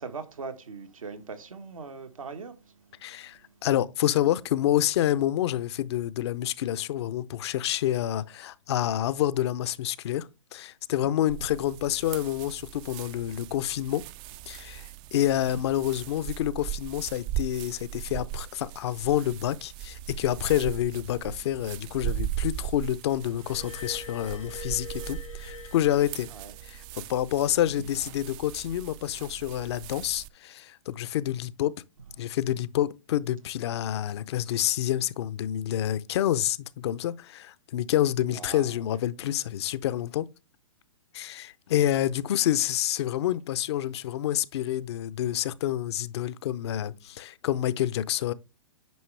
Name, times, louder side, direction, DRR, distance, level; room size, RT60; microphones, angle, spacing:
voice 1, 0.0-2.6 11.5-11.6 26.3-26.5 38.3-38.7, right 5 dB, 85° right, 1.5 m, -40 dB
voice 2, 3.0-14.0 14.5-26.3 26.6-31.7 32.2-40.3 41.1-48.3, left 12 dB, 55° left, 0.7 m, -28 dB
sound 1, 11.3-30.3, right 13 dB, 30° right, 0.4 m, -38 dB
Glass, 23.3-26.9 27.8-28.0, left 3 dB, 80° left, 1.8 m, -44 dB
9.4 x 5.3 x 3.3 m
hypercardioid pair, 120°, 17 cm